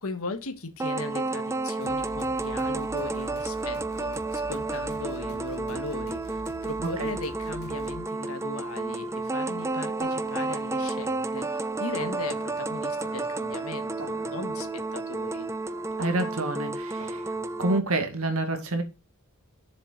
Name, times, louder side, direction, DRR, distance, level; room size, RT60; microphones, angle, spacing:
voice 1, 0.0-15.5, left 3 dB, 75° left, 1.5 m, -38 dB
sound 1, 0.8-17.8, right 3 dB, 15° right, 0.5 m, -31 dB
sound 2, 1.8-8.0, left 1 dB, 50° left, 1.2 m, -44 dB
voice 2, 6.8-7.1 16.0-17.3 17.6-18.8, right 2 dB, 80° right, 2.2 m, -28 dB
sound 3, 10.0-17.8, right 1 dB, 55° right, 2.8 m, -46 dB
6.9 x 6.5 x 4.0 m
head